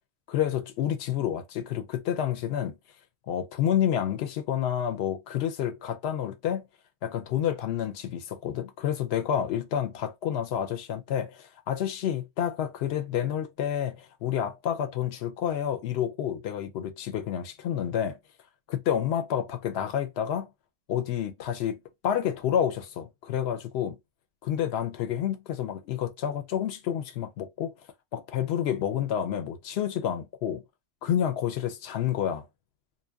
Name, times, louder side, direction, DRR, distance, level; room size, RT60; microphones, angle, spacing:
voice 1, 0.3-2.8 3.3-6.7 7.0-18.2 18.7-20.5 20.9-24.0 24.4-27.7 28.1-30.6 31.0-32.5, left 9 dB, 75° left, 0.8 m, -29 dB
2.6 x 2.2 x 2.2 m
omnidirectional pair, 1.1 m